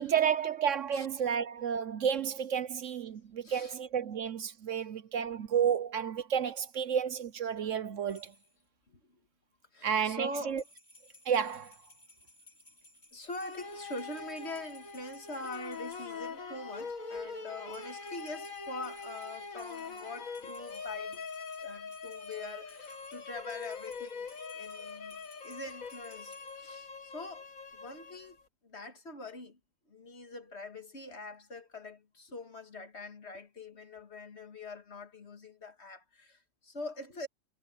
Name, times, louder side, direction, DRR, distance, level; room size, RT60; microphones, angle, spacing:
voice 1, 0.0-8.3 9.8-10.6 11.2-11.7, right 8 dB, 65° right, 1.2 m, -31 dB
voice 2, 3.4-3.8 8.9-9.2 9.7-10.6 13.1-21.3 21.6-27.5 27.7-28.4 28.6-29.6 29.9-37.3, left 2 dB, 50° left, 2.4 m, -44 dB
sound 1, 8.1-8.6 10.5-16.3 17.7-26.6, left 1 dB, 30° left, 6.2 m, -60 dB
sound 2, 13.4-28.5, left 4 dB, 70° left, 2.5 m, -43 dB
omnidirectional pair, 1.5 m